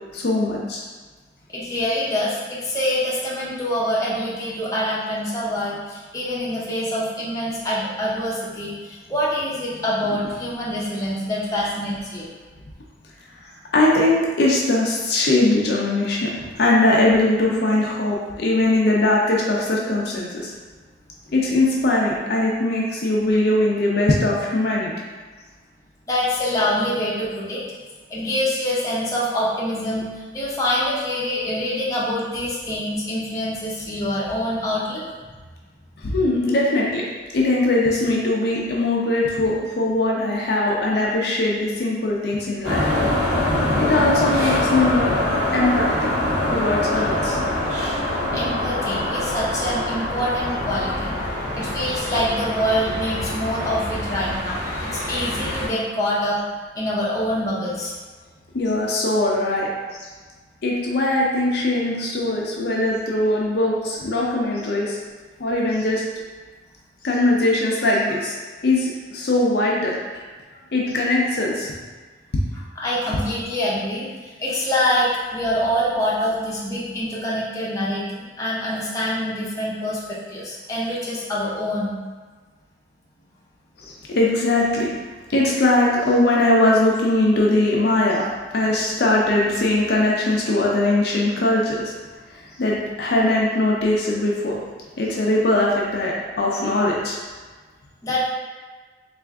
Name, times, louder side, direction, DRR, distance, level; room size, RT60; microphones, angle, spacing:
voice 1, 0.1-0.8 13.7-16.3 16.6-20.5 21.3-24.9 36.0-37.1 37.3-42.9 43.8-45.2 45.5-46.1 46.5-47.4 58.5-59.7 60.6-65.0 65.4-66.1 67.0-68.3 68.6-70.0 70.7-71.7 83.8-84.9 85.3-88.3 88.5-91.9 92.6-94.6 95.0-97.2, left 2 dB, 60° left, -3 dB, 0.5 m, -20 dB
voice 2, 1.5-12.3 16.4-16.5 26.1-27.6 28.1-35.0 40.7-40.8 48.3-51.2 51.5-56.4 56.8-57.9 72.8-81.9 98.0-98.3, equal, 20° left, -7 dB, 0.7 m, -25 dB
sound 1, 42.6-55.7, left 1 dB, 45° right, 1.5 m, -24 dB
3.3 x 2.4 x 3.5 m, 1.4 s
head